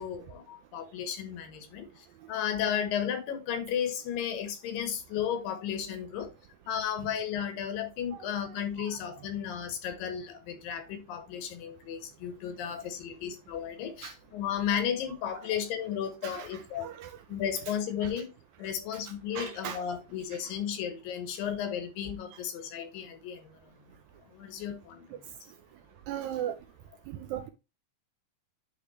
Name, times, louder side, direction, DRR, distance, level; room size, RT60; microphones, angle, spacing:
voice 1, 0.0-6.3 6.7-16.9 17.3-18.3 18.6-23.6 24.3-25.0, left 9 dB, 90° left, 2.9 m, -34 dB
voice 2, 8.1-9.3 14.0-14.1 15.3-15.7 16.2-17.2 17.6-17.7 18.0-18.1 18.9-19.9 20.3-20.6 22.3-22.4 25.1-25.2 26.1-26.6 27.1-27.5, right 10 dB, 85° right, 1.6 m, -40 dB
10.0 x 3.5 x 3.1 m
omnidirectional pair, 3.9 m